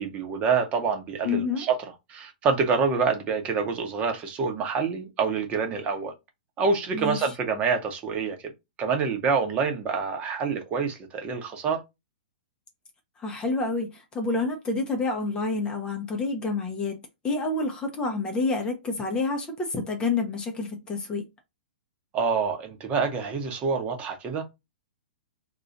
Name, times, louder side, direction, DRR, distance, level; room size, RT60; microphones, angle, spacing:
voice 1, 0.0-1.8 2.1-6.1 6.6-8.4 8.8-11.8 22.1-24.4, right 5 dB, 25° right, 1.0 m, -26 dB
voice 2, 1.2-1.7 6.9-7.3 13.2-17.0 17.2-21.2, left 3 dB, 15° left, 0.8 m, -28 dB
3.0 x 2.5 x 3.9 m
figure-of-eight pair, 110°, 5 cm